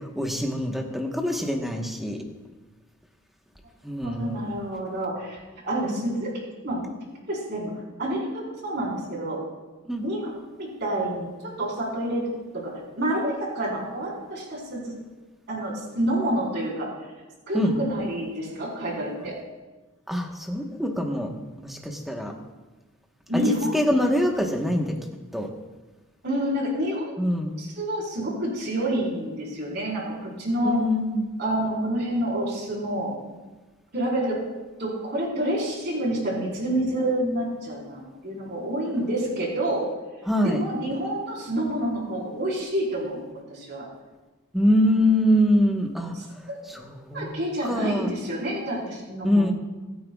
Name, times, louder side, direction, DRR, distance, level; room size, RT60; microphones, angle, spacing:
voice 1, 0.1-2.2 3.8-4.4 9.9-10.0 17.5-17.7 20.1-21.3 21.6-22.3 23.3-24.9 25.3-25.5 27.2-27.5 30.6-31.3 40.3-40.6 44.5-46.1 46.7-47.3 47.6-48.1 49.2-49.5, equal, ahead, 1 dB, 1.2 m, -24 dB
voice 2, 4.0-5.4 5.6-6.3 6.6-6.8 7.3-7.7 8.0-9.4 10.0-11.3 11.6-12.2 12.5-14.9 15.5-16.9 17.5-19.3 23.3-23.8 26.2-27.2 27.6-30.8 31.4-33.1 33.9-34.4 34.8-39.8 40.4-43.2 43.5-43.8 46.1-46.6 47.1-49.5, right 1 dB, 50° right, -3 dB, 4.4 m, -28 dB
25.0 x 9.3 x 2.4 m, 1.2 s
head